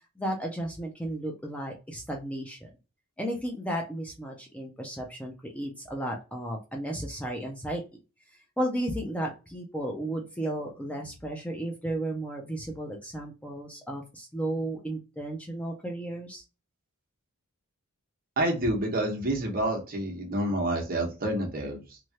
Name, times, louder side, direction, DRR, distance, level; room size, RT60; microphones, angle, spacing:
voice 1, 0.2-2.7 3.2-7.8 8.6-16.4, right 1 dB, 5° left, 0 dB, 0.4 m, -34 dB
voice 2, 18.4-22.0, right 1 dB, 40° right, 1 dB, 1.0 m, -28 dB
3.1 x 2.3 x 2.8 m, 0.31 s
head